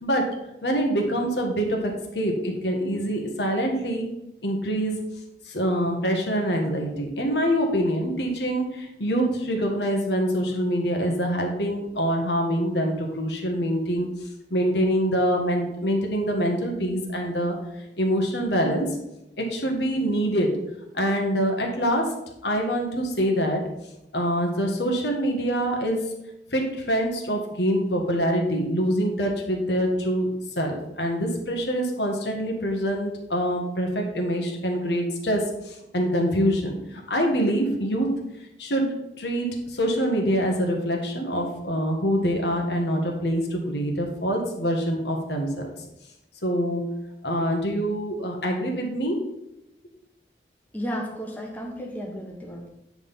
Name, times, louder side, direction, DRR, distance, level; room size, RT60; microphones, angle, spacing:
voice 1, 0.0-4.1 4.4-5.0 5.5-14.1 14.5-17.5 18.0-18.9 19.4-20.6 20.9-22.2 22.4-23.6 24.1-26.2 26.5-36.8 37.1-38.1 38.6-38.9 39.2-45.7 46.4-46.8 47.2-49.2, equal, 80° left, 1 dB, 1.5 m, -25 dB
voice 2, 50.7-52.7, equal, 10° left, -1 dB, 1.1 m, -33 dB
9.1 x 3.6 x 5.7 m, 0.87 s
head